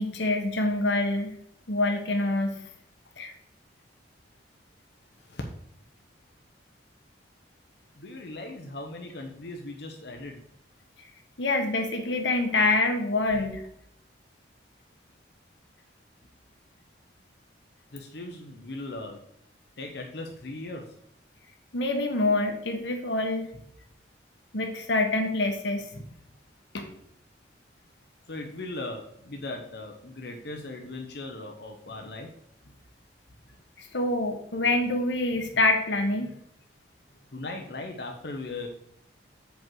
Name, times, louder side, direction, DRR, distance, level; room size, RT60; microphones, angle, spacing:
voice 1, 0.0-1.4 1.7-2.5 3.2-3.3 11.4-13.6 21.7-23.5 24.5-26.0 26.7-26.9 33.9-36.3, left 2 dB, 75° left, 4 dB, 1.2 m, -26 dB
voice 2, 8.0-10.4 17.9-19.2 19.8-20.8 28.3-32.3 37.3-38.7, left 2 dB, 60° left, 2 dB, 0.8 m, -38 dB
7.5 x 5.2 x 4.7 m, 0.72 s
head